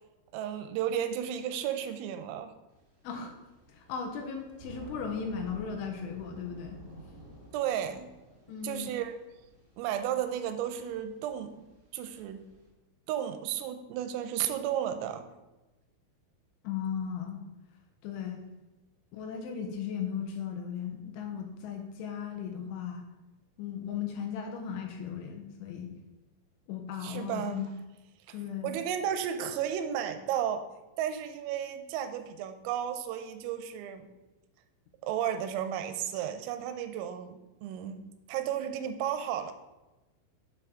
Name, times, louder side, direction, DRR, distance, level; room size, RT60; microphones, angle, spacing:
voice 1, 0.3-2.5 7.5-8.1 8.6-9.1 9.8-11.7 11.9-12.4 13.1-15.3 27.0-27.6 28.3-28.4 28.6-30.6 31.0-34.1 35.0-38.0 38.3-39.5, right 10 dB, 85° right, 8 dB, 3.3 m, -33 dB
Thunder / Rain, 2.7-12.7, right 1 dB, 35° right, 2.1 m, -53 dB
voice 2, 3.0-3.3 3.7-6.8 8.5-8.9 16.6-17.4 18.0-18.5 19.1-23.1 23.6-25.9 26.7-27.7 28.3-28.8, left 7 dB, 80° left, 3 dB, 3.0 m, -36 dB
7.8 x 6.8 x 3.6 m, 1.0 s
omnidirectional pair, 5.9 m